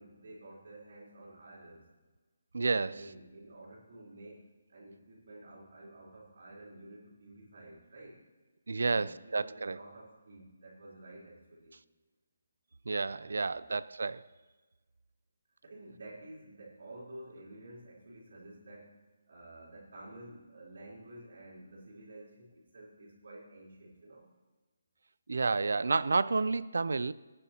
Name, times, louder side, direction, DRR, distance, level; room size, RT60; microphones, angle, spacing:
voice 1, 0.0-1.8 2.8-8.2 8.8-11.8 13.1-13.7 15.6-24.3, right 1 dB, 50° right, -5 dB, 3.7 m, -51 dB
voice 2, 2.5-3.0 8.7-9.8 12.9-14.3 25.3-27.1, right 4 dB, 70° right, 18 dB, 0.4 m, -30 dB
19.0 x 9.9 x 2.9 m, 1.3 s
hypercardioid pair, 180°, 0 cm